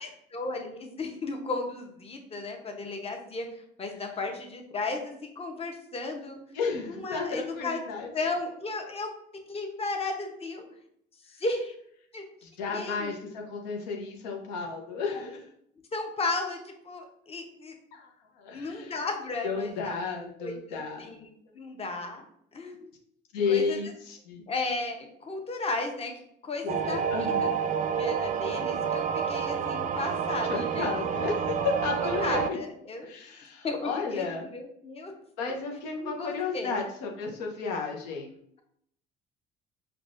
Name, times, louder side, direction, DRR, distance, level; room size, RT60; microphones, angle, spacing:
voice 1, 0.0-6.4 6.9-7.8 8.1-9.1 9.5-10.6 11.2-11.7 12.1-12.2 12.7-13.2 14.9-15.3 15.9-17.7 18.5-21.3 21.5-22.2 22.5-22.9 23.5-23.8 24.5-26.1 26.4-27.5 28.0-30.9 32.0-33.1 33.6-35.1 36.0-36.8, left 3 dB, 30° left, 3 dB, 0.8 m, -34 dB
voice 2, 6.5-8.1 12.4-15.4 17.9-18.9 19.4-21.1 23.3-24.4 26.6-27.5 30.5-32.6 33.0-34.4 35.4-38.3, left 5 dB, 90° left, 1 dB, 0.7 m, -33 dB
sound 1, 26.7-32.5, right 7 dB, 40° right, 0.4 m, -29 dB
4.6 x 2.3 x 2.5 m, 0.69 s
supercardioid pair, 70°, 21 cm